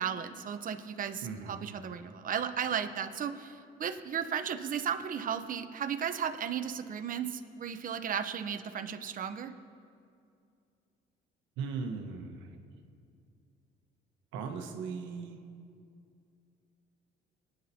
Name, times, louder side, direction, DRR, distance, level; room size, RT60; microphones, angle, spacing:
voice 1, 0.0-9.5, right 8 dB, 45° right, 9 dB, 0.8 m, -35 dB
voice 2, 1.2-1.6 11.6-12.6 14.3-15.4, right 5 dB, 85° right, 4 dB, 1.2 m, -38 dB
21.0 x 9.5 x 2.8 m, 2.4 s
supercardioid pair, 85°, 19 cm